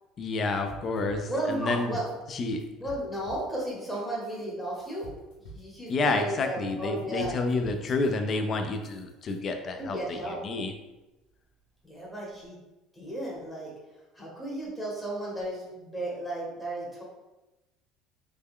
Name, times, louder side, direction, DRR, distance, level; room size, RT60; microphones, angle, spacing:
voice 1, 0.2-2.0 2.3-2.6 5.9-10.7, left 3 dB, 35° left, 6 dB, 0.4 m, -29 dB
sound 1, 0.7-2.3 2.6-9.4, equal, 80° left, 0.8 m, -48 dB
voice 2, 1.3-2.0 2.8-5.1 5.5-7.4 9.8-10.4 11.8-12.6 12.9-13.7 14.1-17.0, right 1 dB, 10° left, -5 dB, 1.0 m, -34 dB
3.3 x 2.2 x 3.6 m, 1.0 s
cardioid pair, 130°, 0 cm